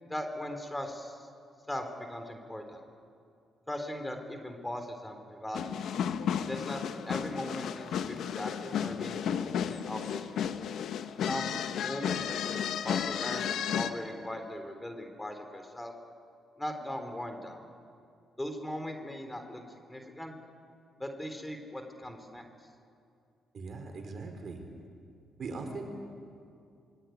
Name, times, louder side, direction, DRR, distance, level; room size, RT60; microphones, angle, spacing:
voice 1, 0.0-1.3 1.7-2.8 3.7-5.8 6.5-10.5 11.3-15.9 16.6-17.6 18.4-20.3 21.0-22.4, left 1 dB, 10° left, 6 dB, 3.6 m, -39 dB
sound 1, 5.5-13.9, left 8 dB, 75° left, 1.3 m, -33 dB
voice 2, 23.5-24.6 25.4-25.8, right 4 dB, 50° right, 4 dB, 4.9 m, -40 dB
25.0 x 22.5 x 9.4 m, 2.5 s
cardioid pair, 90°, 0 cm